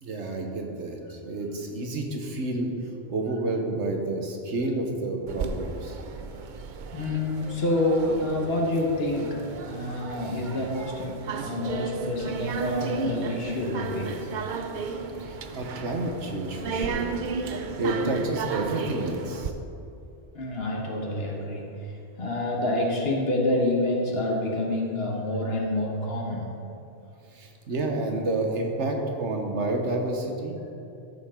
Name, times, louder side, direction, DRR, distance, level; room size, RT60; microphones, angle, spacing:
voice 1, 0.0-2.7 3.1-6.0 15.2-17.1 17.8-19.5 27.3-30.6, right 2 dB, 85° right, 2 dB, 1.5 m, -29 dB
sound 1, 5.3-19.5, right 5 dB, 50° right, 0.6 m, -34 dB
voice 2, 6.9-14.3 20.3-21.9 22.2-26.6, left 1 dB, 60° left, -1 dB, 1.5 m, -27 dB
13.5 x 7.4 x 3.8 m, 2.6 s
omnidirectional pair, 1.2 m